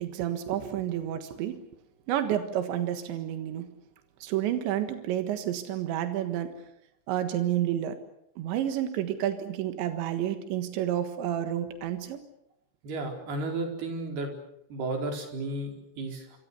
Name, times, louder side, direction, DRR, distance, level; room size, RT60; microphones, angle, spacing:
voice 1, 0.0-1.6 2.1-3.7 4.2-6.5 7.1-8.0 8.4-12.2, right 11 dB, 85° right, 8 dB, 3.8 m, -30 dB
voice 2, 12.8-14.3 14.7-16.4, right 2 dB, 60° right, 3 dB, 6.3 m, -33 dB
26.5 x 26.5 x 6.9 m, 0.78 s
omnidirectional pair, 5.1 m